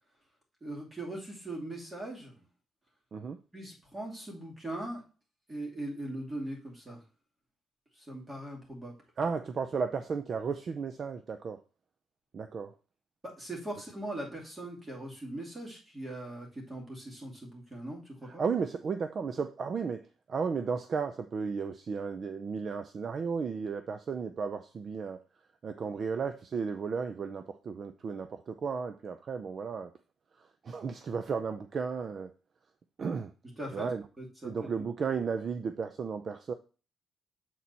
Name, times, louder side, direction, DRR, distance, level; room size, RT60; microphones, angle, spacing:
voice 1, 0.6-2.4 3.5-5.0 5.5-7.0 7.9-9.0 13.2-18.4 33.6-33.9 34.2-34.5, right 1 dB, 15° right, 2.6 m, -40 dB
voice 2, 9.2-11.6 12.3-12.7 18.2-20.0 20.3-25.2 25.6-29.9 30.6-32.3 33.0-33.3 33.7-34.0 34.4-36.5, right 5 dB, 40° right, 0.5 m, -34 dB
7.5 x 4.3 x 4.1 m
cardioid pair, 150°, 0 cm